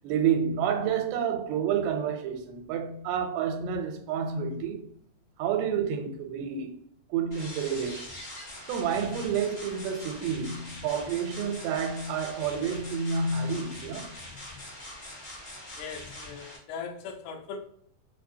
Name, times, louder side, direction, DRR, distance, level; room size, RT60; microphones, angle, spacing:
voice 1, 0.0-4.9 5.4-6.8 7.1-8.1 8.7-14.1, right 7 dB, 85° right, 2.8 m, -29 dB
sound 1, 7.3-16.6, left 1 dB, 60° left, 0.8 m, -43 dB
voice 2, 15.7-17.6, left 6 dB, 75° left, 2.5 m, -39 dB
6.3 x 2.4 x 2.7 m
omnidirectional pair, 4.7 m